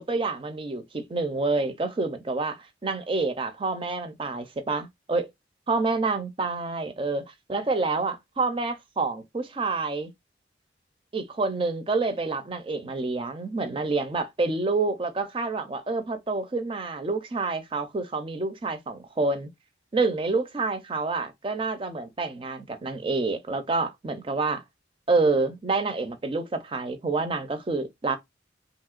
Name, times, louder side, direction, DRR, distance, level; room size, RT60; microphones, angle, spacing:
voice 1, 0.0-5.3 5.7-7.2 7.5-10.1 11.1-19.5 19.9-24.6 25.1-28.2, right 3 dB, 30° right, 0.4 m, -28 dB
3.0 x 2.8 x 2.4 m
head